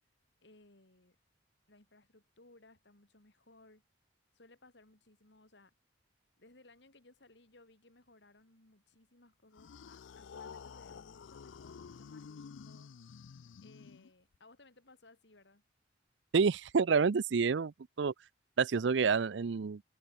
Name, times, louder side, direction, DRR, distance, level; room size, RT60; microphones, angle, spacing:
voice 1, 0.4-1.2 1.7-3.8 4.3-5.7 6.4-12.9 13.6-15.6, left 2 dB, 65° left, 2.7 m, -62 dB
sound 1, 9.5-14.3, left 6 dB, 85° left, 0.4 m, -50 dB
voice 2, 16.3-18.1 18.6-19.8, right 5 dB, 70° right, 0.5 m, -28 dB
open air
head